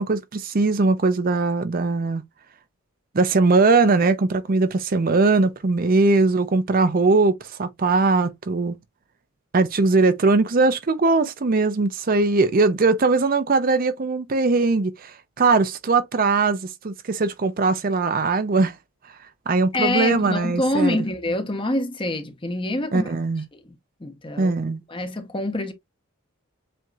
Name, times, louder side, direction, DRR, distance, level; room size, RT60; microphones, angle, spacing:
voice 1, 0.0-2.2 3.1-8.8 9.5-18.8 19.5-21.0 22.9-23.4 24.4-24.8, right 3 dB, 40° right, 0.5 m, -20 dB
voice 2, 19.7-23.1 23.5-23.7 24.0-24.5 24.9-25.7, left 1 dB, 25° left, 0.8 m, -26 dB
7.6 x 2.8 x 2.4 m
head